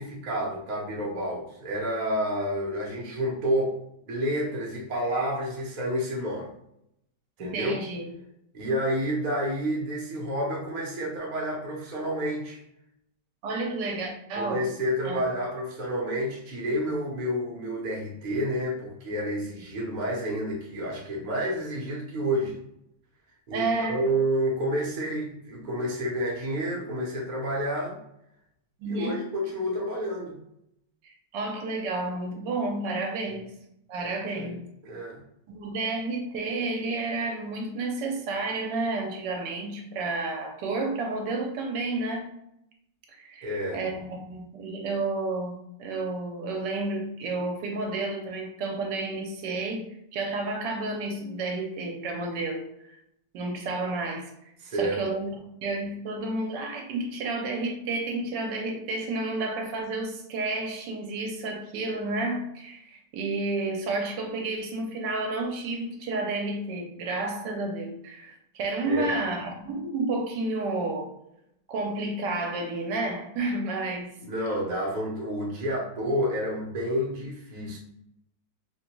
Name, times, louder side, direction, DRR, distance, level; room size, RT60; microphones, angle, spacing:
voice 1, 0.0-3.7 4.0-6.5 7.4-7.8 8.5-12.6 14.4-22.6 23.5-28.0 28.8-30.3 34.4-34.5 34.8-35.2 43.4-43.8 54.6-55.0 68.9-69.2 74.2-77.8, equal, 40° right, -3 dB, 0.6 m, -29 dB
voice 2, 7.4-8.1 13.4-14.7 15.1-15.2 23.5-24.1 28.8-29.2 31.0-33.5 33.9-34.6 35.5-42.3 43.2-49.8 50.1-52.9 53.3-54.3 54.8-55.3 55.6-71.1 71.7-74.1, right 2 dB, 80° right, 2 dB, 1.2 m, -31 dB
3.8 x 2.2 x 3.0 m, 0.79 s
omnidirectional pair, 1.9 m